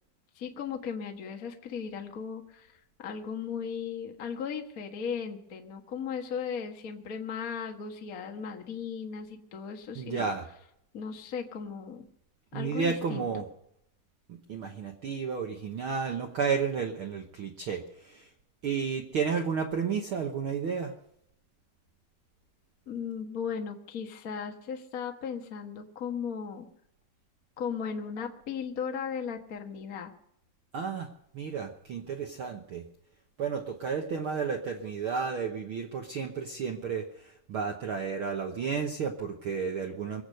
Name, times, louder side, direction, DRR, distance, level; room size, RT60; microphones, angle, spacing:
voice 1, 0.3-2.7 3.0-10.3 10.9-12.1 12.5-13.4 22.9-26.7 27.6-30.1, left 6 dB, 45° left, 4 dB, 1.2 m, -36 dB
voice 2, 9.9-10.5 12.5-13.5 14.3-18.3 18.6-20.9 30.7-32.8 33.4-40.2, right 6 dB, 60° right, 3 dB, 1.4 m, -32 dB
23.5 x 8.1 x 6.7 m, 0.76 s
omnidirectional pair, 3.7 m